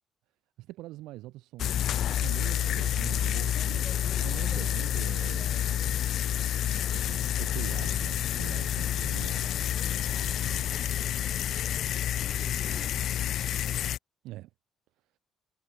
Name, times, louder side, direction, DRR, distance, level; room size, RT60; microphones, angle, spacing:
voice 1, 0.6-5.6 6.7-9.5 10.5-10.7 14.2-14.5, right 17 dB, 90° right, 2.2 m, -43 dB
sound 1, 1.6-14.0, left 11 dB, 65° left, 0.5 m, -29 dB
sound 2, 1.6-13.0, left 2 dB, 10° left, 0.8 m, -50 dB
voice 2, 2.1-3.2 4.0-5.4 9.2-13.6, right 9 dB, 55° right, 7.5 m, -61 dB
cardioid pair, 115°, 0 cm